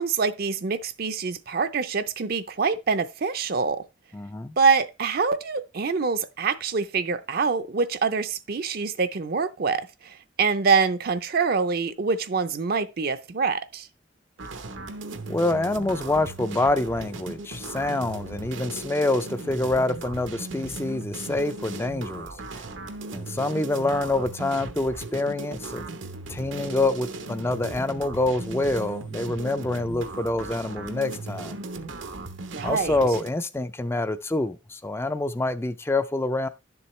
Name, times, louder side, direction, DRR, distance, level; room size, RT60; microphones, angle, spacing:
voice 1, 0.0-3.8 4.6-13.9 32.5-33.0, right 5 dB, 55° right, 0.6 m, -25 dB
voice 2, 4.1-4.6 15.3-22.7 23.1-25.9 26.3-31.6 32.6-36.5, left 2 dB, 15° left, 0.4 m, -26 dB
sound 1, 14.4-33.3, right 2 dB, 85° right, 1.0 m, -37 dB
11.0 x 7.0 x 3.2 m
head